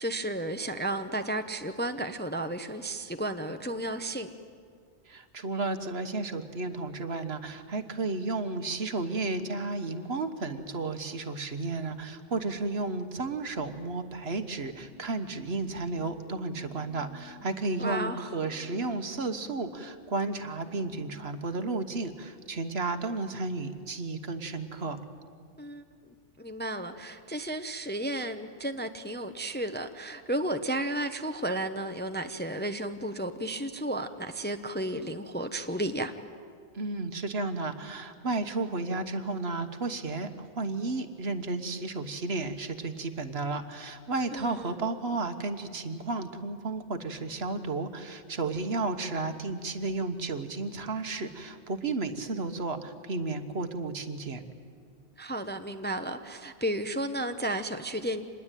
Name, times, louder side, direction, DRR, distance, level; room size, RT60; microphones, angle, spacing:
voice 1, 0.0-4.3 17.8-18.3 25.6-25.8 26.4-36.1 44.3-44.8 55.2-58.3, right 1 dB, 10° left, 7 dB, 0.8 m, -33 dB
voice 2, 5.1-25.0 36.7-54.4, right 3 dB, 60° right, 8 dB, 1.5 m, -33 dB
sound 1, 14.8-17.8 18.3-21.3, left 2 dB, 10° right, 1.6 m, -52 dB
26.0 x 20.5 x 9.1 m, 2.1 s
omnidirectional pair, 1.2 m